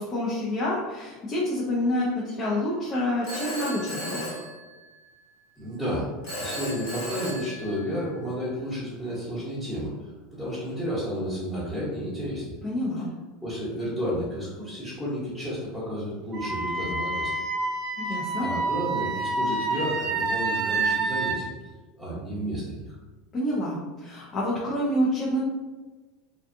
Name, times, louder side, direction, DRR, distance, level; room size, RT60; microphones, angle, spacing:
voice 1, 0.0-4.4 12.6-13.1 18.0-18.4 23.3-25.4, left 1 dB, 35° left, -6 dB, 0.6 m, -28 dB
Telephone, 3.2-5.2 6.2-8.2, equal, 70° left, 1.0 m, -35 dB
voice 2, 5.6-6.1 6.4-12.5 13.4-17.3 18.4-21.5 22.0-23.0, equal, 5° left, -10 dB, 1.1 m, -32 dB
Wind instrument woodwind instrument, 16.3-21.4, right 3 dB, 45° right, 0.5 m, -28 dB
2.5 x 2.3 x 2.6 m, 1.2 s
hypercardioid pair, 90°, 0 cm